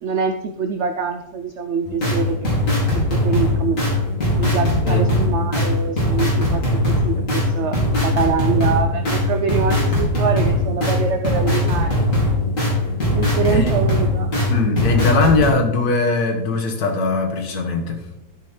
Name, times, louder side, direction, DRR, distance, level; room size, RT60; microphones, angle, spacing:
voice 1, 0.0-2.4 2.9-3.8 4.4-12.0 13.1-14.3, right 6 dB, 60° right, 0.8 m, -24 dB
sound 1, 1.8-15.5, left 1 dB, 55° left, 3.2 m, -20 dB
voice 2, 14.5-18.0, left 3 dB, 75° left, 1.8 m, -20 dB
12.0 x 5.0 x 4.4 m
omnidirectional pair, 1.6 m